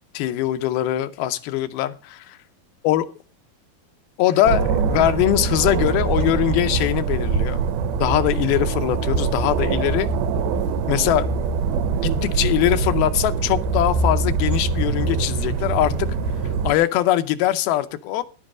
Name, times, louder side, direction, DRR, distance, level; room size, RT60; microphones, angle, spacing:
voice 1, 0.1-2.4 2.8-3.1 4.2-7.6 8.0-10.1 10.9-11.3 12.0-16.1 16.6-18.2, left 13 dB, 80° left, 2.6 m, -22 dB
sound 1, 4.4-16.7, right 5 dB, 80° right, 2.6 m, -23 dB
11.0 x 7.6 x 6.0 m
omnidirectional pair, 4.4 m